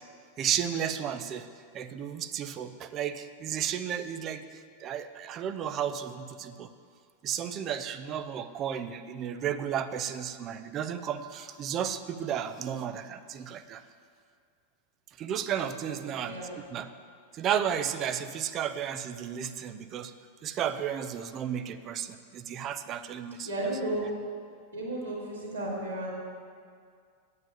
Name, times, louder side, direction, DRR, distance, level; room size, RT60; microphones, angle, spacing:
voice 1, 0.4-1.5 1.7-6.7 7.2-13.8 15.2-16.4 16.7-16.9 17.3-20.1 20.4-23.5, right 9 dB, 30° right, 11 dB, 0.6 m, -33 dB
voice 2, 15.7-16.5 23.4-24.0 24.7-26.1, right 1 dB, 80° right, -8 dB, 3.3 m, -34 dB
9.3 x 8.8 x 7.4 m, 2.2 s
figure-of-eight pair, 90°, 0 cm